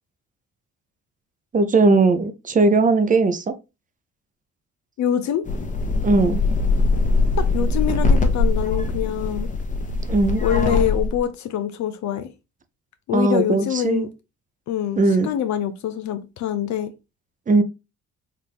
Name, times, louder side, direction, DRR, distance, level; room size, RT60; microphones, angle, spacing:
voice 1, 1.5-3.5 6.0-6.4 10.1-10.4 13.1-14.1 15.0-15.3 17.5-17.6, right 3 dB, 25° right, 0.6 m, -18 dB
voice 2, 5.0-5.4 7.4-9.5 10.4-12.3 13.1-14.1 14.7-16.9, left 10 dB, 70° left, 0.6 m, -25 dB
sound 1, 5.4-11.2, left 3 dB, 25° left, 1.0 m, -21 dB
4.3 x 2.5 x 3.4 m
cardioid pair, 90°, 30 cm